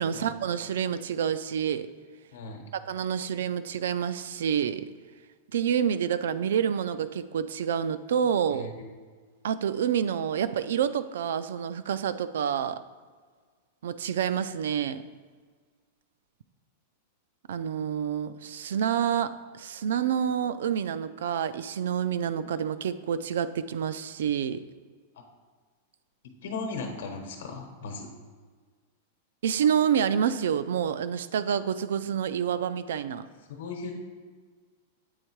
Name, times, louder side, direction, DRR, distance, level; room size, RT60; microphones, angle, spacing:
voice 1, 0.0-1.9 2.9-4.8 5.5-8.7 9.4-12.8 13.8-15.0 17.5-24.6 29.4-33.3, right 8 dB, 85° right, 14 dB, 0.4 m, -28 dB
voice 2, 2.3-2.6 8.5-8.8 22.4-22.5 25.1-25.2 26.4-28.1 33.5-34.0, left 3 dB, 75° left, 2 dB, 1.0 m, -37 dB
8.1 x 3.6 x 4.5 m, 1.5 s
supercardioid pair, 165°, 0 cm